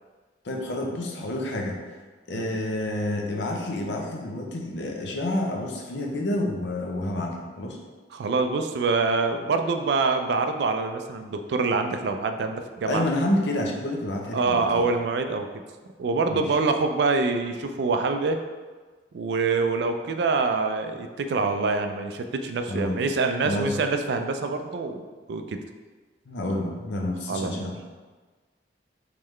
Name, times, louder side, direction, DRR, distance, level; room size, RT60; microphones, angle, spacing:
voice 1, 0.4-1.8 2.3-7.8 12.9-14.8 16.3-16.5 22.7-23.1 23.4-23.7 26.3-27.8, left 1 dB, 75° left, 0 dB, 0.6 m, -29 dB
voice 2, 8.1-13.0 14.3-15.5 16.0-18.4 19.1-25.6 27.3-27.5, right 4 dB, 65° right, 7 dB, 0.3 m, -25 dB
3.7 x 3.2 x 3.1 m, 1.4 s
head